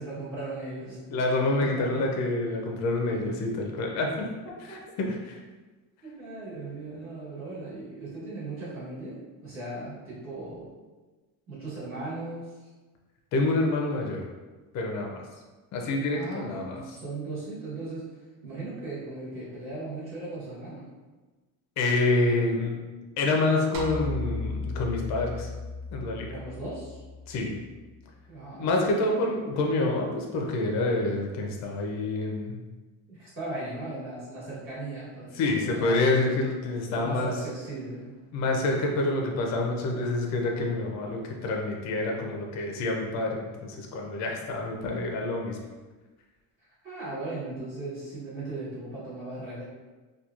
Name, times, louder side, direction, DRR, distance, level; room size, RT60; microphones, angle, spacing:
voice 1, 0.0-1.0 1.6-2.0 4.7-4.8 6.2-10.8 11.5-12.7 13.3-13.5 16.1-20.9 26.3-27.0 28.3-29.1 33.1-36.0 36.9-38.1 46.8-49.6, right 2 dB, 35° right, -10 dB, 1.2 m, -38 dB
voice 2, 1.1-4.3 4.7-5.4 13.3-14.3 14.7-15.2 15.7-16.8 21.8-22.8 23.2-25.5 25.9-26.3 27.3-27.6 28.6-32.6 35.4-37.3 38.3-45.6, left 2 dB, 45° left, 1 dB, 0.4 m, -27 dB
sound 1, 23.7-28.2, left 2 dB, 65° right, 0.5 m, -36 dB
2.9 x 2.3 x 2.4 m, 1.2 s
cardioid pair, 180°, 39 cm